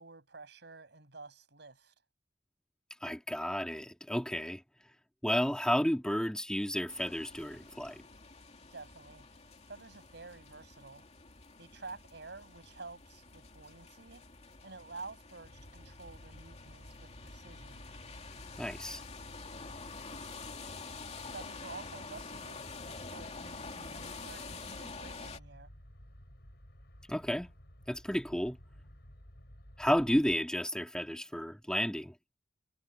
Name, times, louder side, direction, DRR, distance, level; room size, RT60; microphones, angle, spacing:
voice 1, 0.0-1.9 8.7-11.0 11.6-14.2 14.6-17.9 21.3-25.7, right 3 dB, 65° right, 6.4 m, -50 dB
voice 2, 3.0-4.6 5.2-8.0 18.6-19.0 27.1-27.5 27.9-28.6 29.8-32.1, equal, 5° left, 1.9 m, -32 dB
sound 1, 6.9-25.4, left 4 dB, 35° left, 2.7 m, -48 dB
sound 2, 15.4-30.4, equal, 60° left, 6.5 m, -54 dB
head